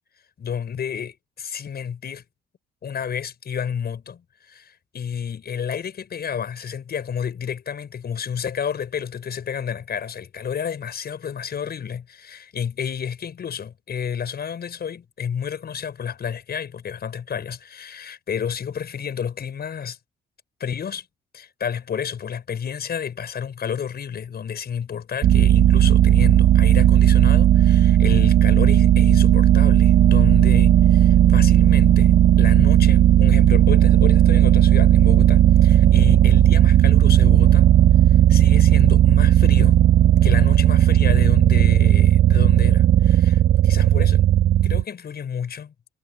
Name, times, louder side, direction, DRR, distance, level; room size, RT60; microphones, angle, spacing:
voice 1, 0.4-2.2 2.8-20.0 20.6-21.0 21.3-37.7 38.3-39.8 40.2-44.2 44.6-45.7, left 7 dB, 55° left, 6.2 m, -30 dB
sound 1, 25.2-44.8, right 11 dB, 55° right, 0.8 m, -15 dB
cardioid pair, 90°, 20 cm